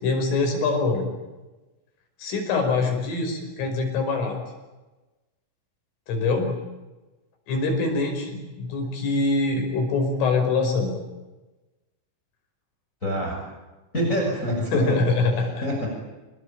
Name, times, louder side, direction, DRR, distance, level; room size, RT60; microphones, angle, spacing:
voice 1, 0.0-1.0 2.2-4.4 6.1-6.5 7.5-10.9 14.7-15.7, left 3 dB, 80° left, 3 dB, 8.0 m, -24 dB
voice 2, 13.0-13.4 13.9-15.0 15.6-15.9, equal, 15° left, 0 dB, 6.4 m, -26 dB
27.0 x 21.0 x 9.0 m, 1.1 s
omnidirectional pair, 5.6 m